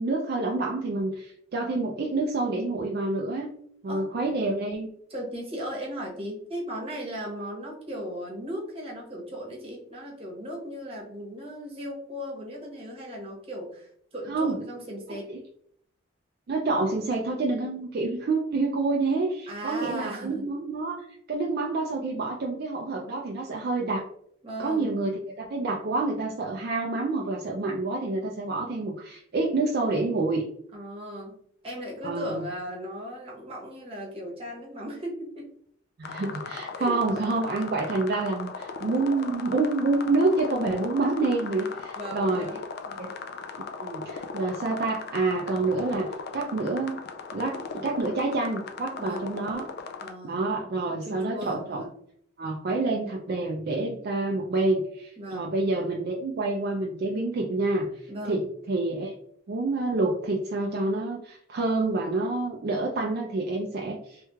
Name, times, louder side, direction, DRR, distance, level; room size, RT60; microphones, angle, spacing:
voice 1, 0.0-3.5 3.8-4.9 14.3-14.6 15.3-15.4 16.5-24.1 24.6-30.4 32.0-32.4 36.0-42.5 43.0-43.1 43.8-47.0 47.3-49.7 50.2-51.9 52.4-57.9 58.3-58.4 58.7-59.1 59.5-64.2, right 3 dB, 50° right, -1 dB, 0.4 m, -28 dB
voice 2, 5.1-15.3 19.5-20.5 24.4-24.9 30.7-31.4 31.6-35.4 36.8-37.0 42.0-42.6 42.9-43.2 49.0-49.3 50.0-50.4 51.0-51.9 55.2-55.5 58.1-58.4, equal, 30° right, -3 dB, 1.0 m, -37 dB
sound 1, 36.0-50.1, left 4 dB, 50° left, 0.4 m, -38 dB
3.3 x 3.0 x 2.3 m, 0.68 s
head